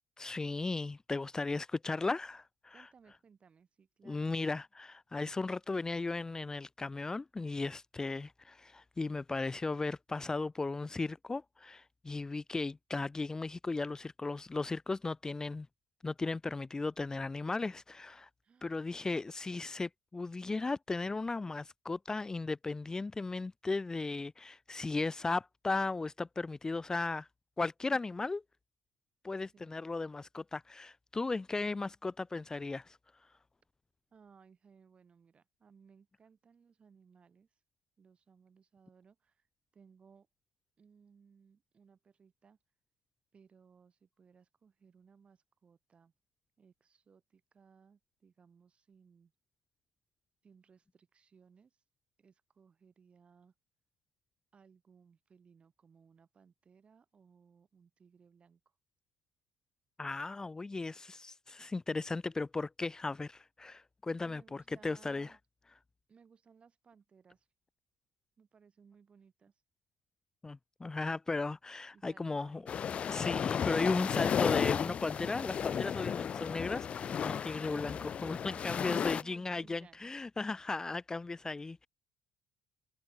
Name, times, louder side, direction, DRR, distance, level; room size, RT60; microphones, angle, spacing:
voice 1, 0.2-2.9 4.0-15.7 16.0-18.3 18.6-27.3 27.6-28.4 29.2-33.0 60.0-65.3 70.4-72.8 73.1-81.9, left 3 dB, 20° left, 1.1 m, -36 dB
voice 2, 2.7-4.4 18.4-18.8 29.5-29.8 34.1-37.5 38.0-39.5 39.7-40.3 40.8-42.6 43.3-46.1 46.6-49.3 50.4-51.8 52.2-53.5 54.5-58.6 64.2-65.4 66.1-67.5 68.4-69.6 71.9-72.7 78.4-80.1, right 6 dB, 40° right, 7.3 m, -63 dB
sound 1, 72.7-79.2, left 8 dB, 40° left, 0.3 m, -33 dB
hypercardioid pair, 60°, 3 cm